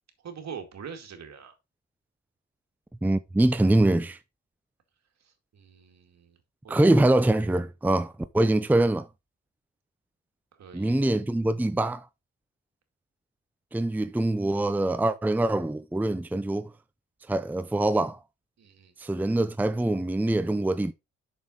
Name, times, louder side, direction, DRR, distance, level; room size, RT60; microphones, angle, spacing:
voice 1, 0.2-1.5 5.2-6.4 6.6-6.9 10.5-11.0 18.6-18.9, right 6 dB, 60° right, 2.2 m, -43 dB
voice 2, 3.0-4.2 6.7-9.1 10.7-12.0 13.7-16.7 17.3-18.2 19.0-20.9, right 1 dB, 5° right, 0.6 m, -24 dB
6.9 x 6.4 x 3.9 m
supercardioid pair, 55°, 30 cm